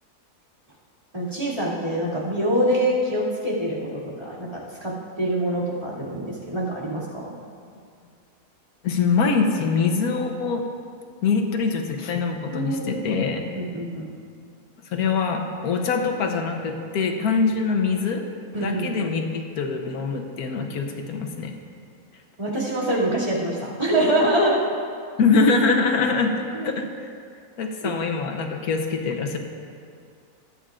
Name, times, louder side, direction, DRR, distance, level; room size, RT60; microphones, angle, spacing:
voice 1, 1.1-7.3 12.5-13.0 13.5-14.1 18.5-19.0 22.4-24.6 26.5-26.7 27.8-27.9, right 1 dB, 25° right, -8 dB, 2.6 m, -25 dB
voice 2, 8.8-10.6 11.2-13.4 14.9-18.2 18.6-21.5 25.2-27.1 27.6-29.4, left 4 dB, 80° left, 4 dB, 1.4 m, -23 dB
22.0 x 8.7 x 2.5 m, 2.3 s
omnidirectional pair, 1.6 m